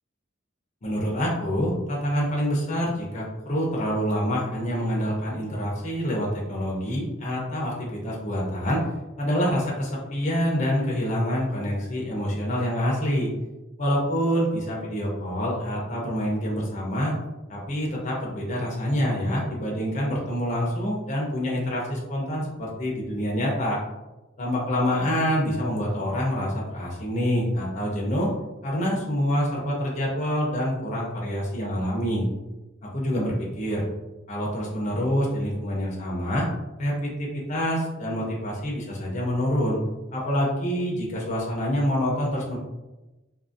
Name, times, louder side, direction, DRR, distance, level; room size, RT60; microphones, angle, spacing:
voice 1, 0.8-8.8 9.2-13.3 13.8-17.1 17.5-23.8 24.4-28.3 28.6-32.2 32.9-33.9 34.3-36.5 36.8-39.8 40.1-42.6, equal, 35° left, -3 dB, 0.5 m, -26 dB
2.6 x 2.5 x 2.5 m, 1.0 s
head